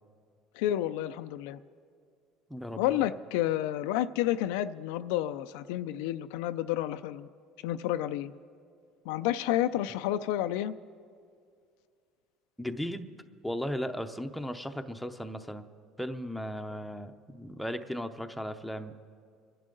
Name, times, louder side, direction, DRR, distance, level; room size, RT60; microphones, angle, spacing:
voice 1, 0.5-1.6 2.8-7.3 7.6-8.3 9.1-10.7, left 13 dB, 85° left, 11 dB, 0.4 m, -30 dB
voice 2, 2.5-3.1 12.6-13.1 13.4-15.7 16.0-18.9, equal, ahead, 6 dB, 0.7 m, -36 dB
26.5 x 11.0 x 3.9 m, 2.3 s
cardioid pair, 125°, 0 cm